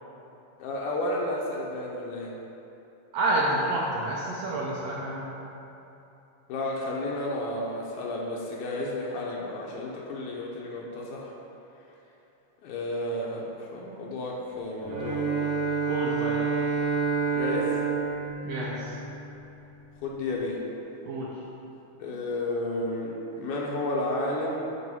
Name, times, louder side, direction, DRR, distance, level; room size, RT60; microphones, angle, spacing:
voice 1, 0.6-2.3 6.5-11.3 12.6-15.3 17.3-17.8 20.0-20.6 22.0-24.7, left 1 dB, 85° left, -3 dB, 2.2 m, -32 dB
voice 2, 3.1-5.3 15.8-16.4 18.4-18.9 21.0-21.3, right 2 dB, 80° right, -4 dB, 1.4 m, -29 dB
Bowed string instrument, 14.8-19.4, right 5 dB, 60° right, 2.2 m, -29 dB
7.7 x 3.0 x 5.4 m, 2.9 s
omnidirectional pair, 3.5 m